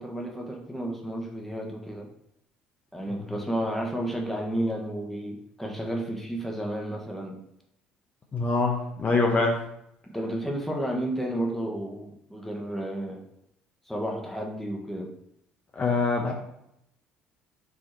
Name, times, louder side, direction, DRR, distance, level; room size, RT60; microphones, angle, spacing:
voice 1, 0.0-2.1 2.9-7.4 10.1-13.2 13.9-15.1, right 1 dB, 5° left, 0 dB, 1.3 m, -32 dB
voice 2, 8.3-9.6 15.8-16.3, left 3 dB, 35° left, 0 dB, 1.1 m, -24 dB
6.1 x 3.5 x 4.4 m, 0.77 s
figure-of-eight pair, 55°, 4 cm